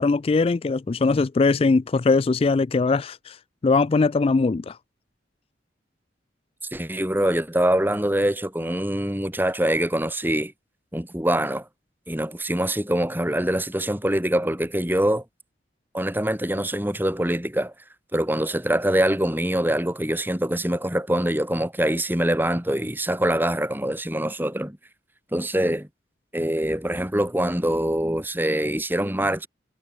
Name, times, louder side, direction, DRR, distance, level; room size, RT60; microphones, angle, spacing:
voice 1, 0.0-4.8, left 3 dB, 30° left, 0.3 m, -21 dB
voice 2, 6.7-10.5 10.9-11.6 12.1-15.2 15.9-17.7 18.1-24.8 25.3-25.9 26.3-29.5, right 1 dB, 10° right, 2.8 m, -24 dB
head